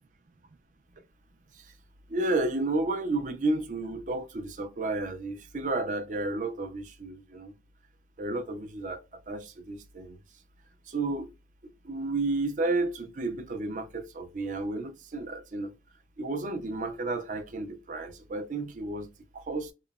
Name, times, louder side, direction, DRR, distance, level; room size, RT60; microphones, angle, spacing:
voice 1, 2.1-7.5 8.2-10.2 10.9-11.3 11.6-15.7 16.2-19.7, right 2 dB, 45° right, 0.5 m, -32 dB
2.9 x 2.1 x 2.2 m
head